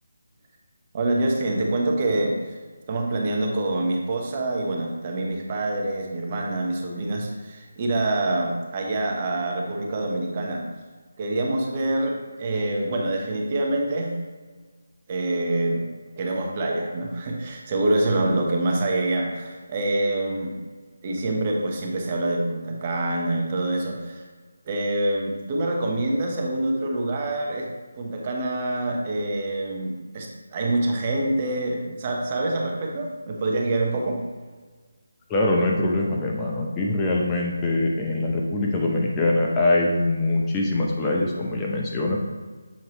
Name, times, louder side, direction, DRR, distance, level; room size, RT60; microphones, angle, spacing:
voice 1, 0.9-2.6 2.9-10.6 11.2-14.1 15.1-15.8 16.2-20.5 21.0-24.2 24.7-27.7 27.9-34.2, right 2 dB, 30° right, 0 dB, 1.0 m, -26 dB
voice 2, 35.3-42.2, left 2 dB, 15° left, -2 dB, 0.6 m, -23 dB
7.3 x 4.5 x 3.0 m, 1.4 s
figure-of-eight pair, 160°, 0 cm